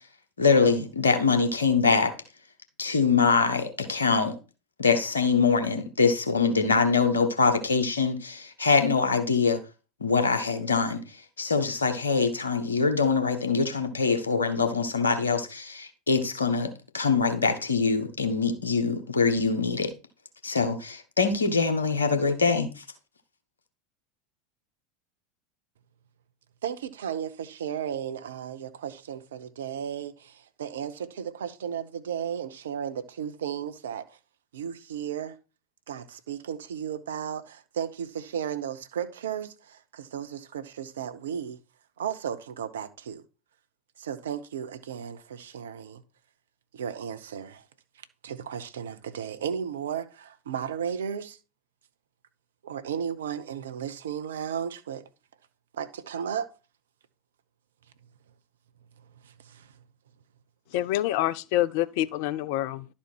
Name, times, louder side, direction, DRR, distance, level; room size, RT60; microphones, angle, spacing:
voice 1, 0.4-2.1 2.8-4.4 4.8-9.6 10.0-11.0 11.4-19.9 20.4-22.8, left 4 dB, 80° left, 1.2 m, -24 dB
voice 2, 26.6-34.2 34.5-35.4 35.9-41.6 42.0-43.2 44.0-46.0 46.7-47.6 48.2-51.4 52.6-55.0 55.7-56.5 59.2-59.7, right 8 dB, 70° right, 0.7 m, -34 dB
voice 3, 60.7-62.9, left 14 dB, 55° left, 0.5 m, -27 dB
11.5 x 4.3 x 4.5 m
figure-of-eight pair, 80°, 0 cm